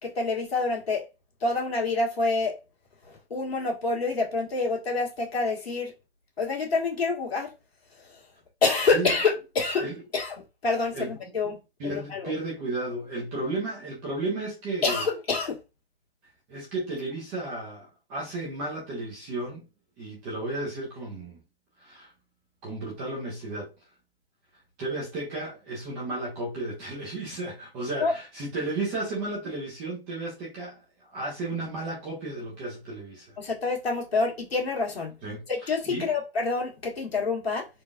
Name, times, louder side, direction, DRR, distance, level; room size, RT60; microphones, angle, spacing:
voice 1, 0.0-1.0 1.4-2.6 3.0-5.9 6.4-7.5 8.0-8.2 8.6-9.9 10.1-11.6 11.8-12.3 14.8-15.6 28.0-28.1 33.4-35.2 35.5-37.7, left 3 dB, 75° left, 1.6 m, -27 dB
voice 2, 11.8-15.0 16.5-19.6 20.0-21.4 21.8-22.1 22.6-23.7 24.8-33.4 35.2-35.4 35.9-36.1, right 2 dB, 10° right, 0.4 m, -33 dB
3.8 x 2.4 x 2.4 m
hypercardioid pair, 145°, 31 cm